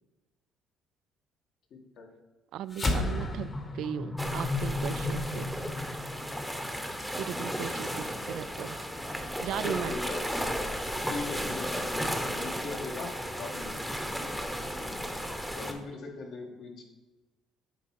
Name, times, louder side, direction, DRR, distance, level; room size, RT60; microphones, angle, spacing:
voice 1, 1.7-2.1 9.5-10.5 11.1-13.7 15.5-16.8, left 3 dB, 70° left, 1 dB, 1.7 m, -40 dB
voice 2, 2.5-5.5 7.2-8.8 9.4-10.0 14.2-14.3, right 10 dB, 70° right, 16 dB, 0.3 m, -37 dB
sound 1, 2.7-7.3, left 2 dB, 30° left, 1.1 m, -33 dB
sound 2, 4.2-15.7, equal, 5° left, 0.8 m, -34 dB
9.2 x 3.6 x 6.3 m, 1.1 s
cardioid pair, 105°, 0 cm